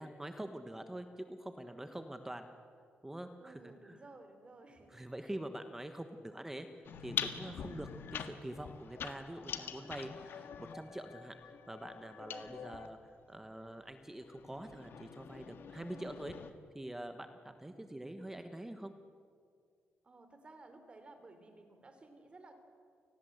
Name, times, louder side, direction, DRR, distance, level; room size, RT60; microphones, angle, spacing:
voice 1, 0.0-2.5 3.0-4.0 4.9-6.7 7.0-11.3 11.7-16.3 16.7-18.9, right 1 dB, 10° right, 7 dB, 1.3 m, -45 dB
voice 2, 3.4-5.3 15.9-16.2 20.0-22.5, right 2 dB, 25° right, 7 dB, 3.3 m, -56 dB
sound 1, 6.9-12.9 13.8-16.5, left 7 dB, 65° left, 1.7 m, -44 dB
29.0 x 20.5 x 8.0 m, 2.2 s
wide cardioid pair, 150°, 4 cm